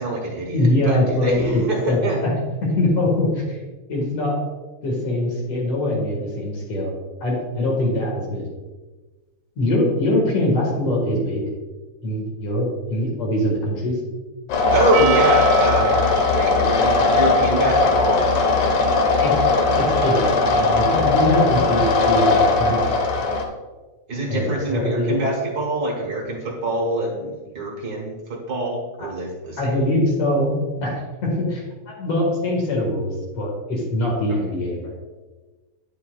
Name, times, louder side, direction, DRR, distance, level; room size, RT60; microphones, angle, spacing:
voice 1, 0.0-2.2 14.7-16.0 16.3-18.2 24.1-28.2 28.5-29.7, right 2 dB, 60° right, -1 dB, 1.0 m, -24 dB
voice 2, 0.5-2.3 2.8-3.6 3.9-4.4 4.8-6.9 7.2-8.4 9.6-11.4 12.0-14.0 19.2-19.4 19.8-22.8 24.3-25.2 29.0-29.1 29.6-34.9, left 1 dB, 55° left, -2 dB, 2.5 m, -23 dB
sound 1, 14.5-23.4, left 3 dB, 80° left, 1.2 m, -19 dB
Percussion, 14.9-19.5, right 9 dB, 85° right, 2.2 m, -30 dB
10.0 x 6.9 x 2.3 m, 1.3 s
omnidirectional pair, 3.5 m